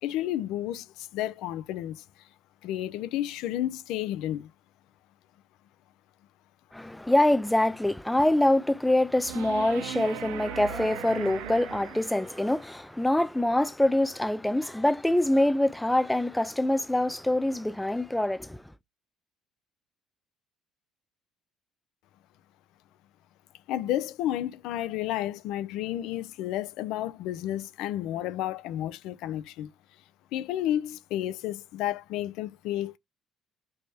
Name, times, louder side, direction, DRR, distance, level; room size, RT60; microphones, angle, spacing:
voice 1, 0.0-2.0 2.6-4.5 23.7-29.7 30.3-33.0, left 12 dB, 75° left, 0.4 m, -31 dB
voice 2, 6.7-18.6, left 1 dB, 5° left, 0.4 m, -25 dB
sound 1, 9.2-12.6 15.2-15.3, right 11 dB, 90° right, 0.3 m, -39 dB
3.3 x 2.1 x 4.2 m
supercardioid pair, 80°, 0 cm